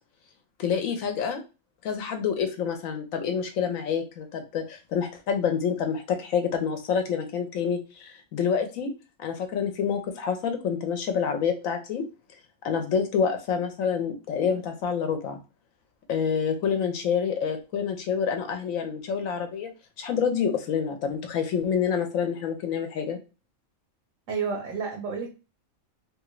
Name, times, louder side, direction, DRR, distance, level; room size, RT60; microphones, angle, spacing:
voice 1, 0.6-1.4 1.8-8.9 9.2-12.0 12.6-15.4 16.1-19.7 20.0-23.2, left 7 dB, 75° left, 6 dB, 1.0 m, -27 dB
voice 2, 24.3-25.3, right 5 dB, 75° right, 2 dB, 1.1 m, -30 dB
2.9 x 2.4 x 3.0 m, 0.30 s
omnidirectional pair, 1.4 m